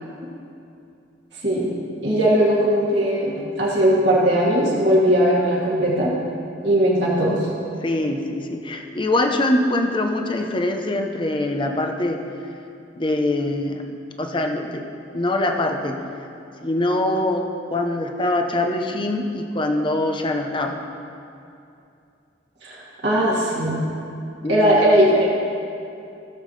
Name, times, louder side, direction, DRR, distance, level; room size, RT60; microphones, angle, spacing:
voice 1, 2.0-6.1 6.6-7.5 22.6-23.8 24.5-25.3, equal, 60° right, -7 dB, 2.0 m, -19 dB
voice 2, 7.8-12.2 12.9-13.8 14.2-14.8 15.1-16.0 16.6-20.8 24.4-24.9, left 1 dB, 25° left, 3 dB, 0.7 m, -23 dB
16.5 x 7.2 x 3.3 m, 2.6 s
head